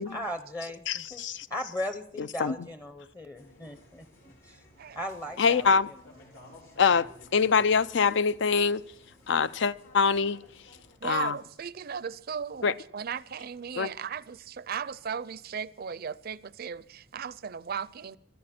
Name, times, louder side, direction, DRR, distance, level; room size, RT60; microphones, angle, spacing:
voice 1, 0.0-1.2 1.5-4.6 4.9-5.7, equal, 15° left, 0.7 m, -37 dB
voice 2, 0.9-1.5 2.2-2.6 5.4-5.9 6.8-7.1 7.3-8.8 9.3-10.4 11.0-11.3 12.6-12.7 13.8-13.9, left 5 dB, 65° left, 0.5 m, -24 dB
sound 1, 3.4-11.0, left 1 dB, 85° left, 4.4 m, -55 dB
voice 3, 11.0-18.2, right 7 dB, 55° right, 0.5 m, -36 dB
23.0 x 13.0 x 4.3 m
head